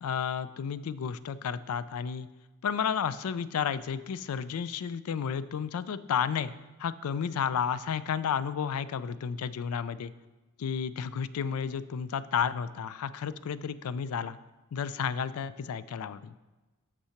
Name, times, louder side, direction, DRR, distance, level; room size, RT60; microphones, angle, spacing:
voice 1, 0.0-2.3 2.6-6.5 6.8-10.1 10.6-14.4 14.7-16.3, left 7 dB, 90° left, 15 dB, 0.4 m, -32 dB
6.7 x 5.7 x 5.7 m, 1.1 s
head